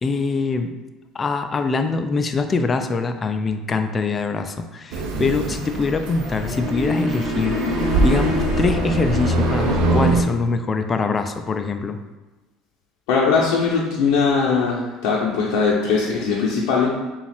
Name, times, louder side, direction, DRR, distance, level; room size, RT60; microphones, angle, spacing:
voice 1, 0.0-0.7 1.1-12.0, left 4 dB, 25° left, 8 dB, 0.3 m, -23 dB
sound 1, 4.9-10.2, right 2 dB, 75° right, 0.6 m, -23 dB
sound 2, 6.2-10.2, left 3 dB, 10° left, 0.8 m, -27 dB
voice 2, 13.1-16.9, left 5 dB, 85° left, -5 dB, 0.7 m, -20 dB
4.9 x 2.4 x 3.4 m, 1.2 s
cardioid pair, 125°, 0 cm